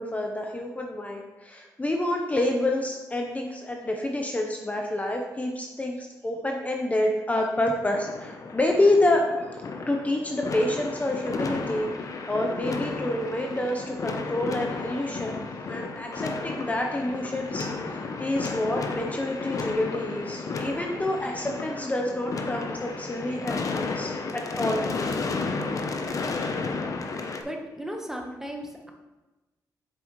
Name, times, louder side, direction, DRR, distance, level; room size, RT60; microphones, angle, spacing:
voice 1, 0.0-11.9 12.3-24.9, left 1 dB, 20° left, 2 dB, 0.8 m, -28 dB
sound 1, 7.9-27.4, left 4 dB, 55° left, 0.8 m, -33 dB
voice 2, 27.4-28.9, equal, 5° right, 1 dB, 1.2 m, -36 dB
7.9 x 6.0 x 3.1 m, 1.1 s
cardioid pair, 75°, 7 cm